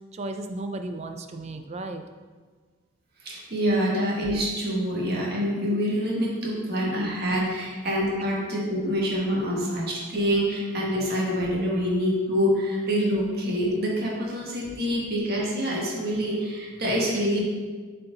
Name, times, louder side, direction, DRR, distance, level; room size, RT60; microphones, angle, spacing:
voice 1, 0.1-2.0 11.7-11.8, right 2 dB, 30° right, 7 dB, 0.4 m, -35 dB
voice 2, 3.2-17.4, equal, 50° right, -3 dB, 1.6 m, -26 dB
7.7 x 4.4 x 3.9 m, 1.5 s
head